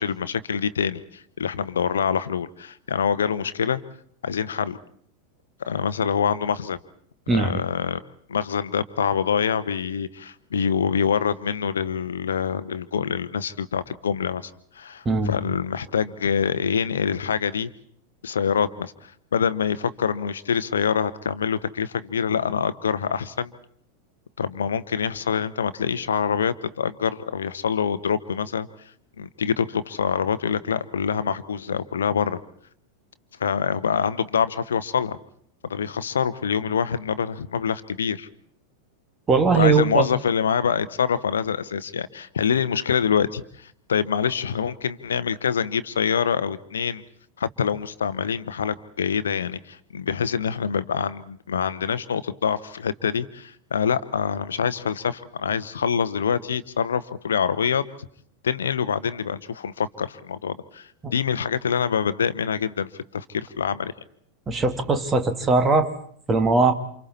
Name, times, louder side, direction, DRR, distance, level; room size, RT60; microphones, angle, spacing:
voice 1, 0.0-3.8 4.2-4.8 5.6-6.8 7.3-8.0 8.3-17.7 18.2-23.5 24.4-28.7 29.2-32.4 33.4-35.2 35.6-38.3 39.6-47.0 47.4-57.8 58.4-63.9, left 7 dB, 65° left, 14 dB, 1.0 m, -25 dB
voice 2, 7.3-7.6 15.1-15.3 39.3-40.1 61.0-61.1 64.5-65.9 66.3-66.7, right 3 dB, 20° right, 9 dB, 2.0 m, -20 dB
29.0 x 27.5 x 4.2 m, 0.62 s
figure-of-eight pair, 90°, 0 cm